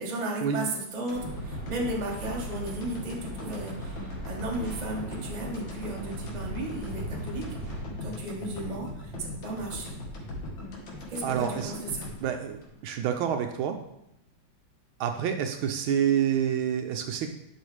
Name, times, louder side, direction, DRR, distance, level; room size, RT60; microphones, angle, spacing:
voice 1, 0.0-7.4 8.0-10.0 11.1-12.1, right 1 dB, 25° right, -1 dB, 1.1 m, -35 dB
sound 1, 1.1-13.3 13.7-13.8, left 2 dB, 65° left, 2.1 m, -40 dB
sound 2, 1.1-7.8, right 3 dB, 45° right, 2.7 m, -40 dB
sound 3, 6.1-12.1, equal, 45° left, 2.3 m, -46 dB
voice 2, 11.2-11.7 12.2-13.8 15.0-17.3, right 9 dB, 75° right, 6 dB, 1.4 m, -28 dB
10.5 x 5.5 x 3.3 m, 0.82 s
omnidirectional pair, 2.4 m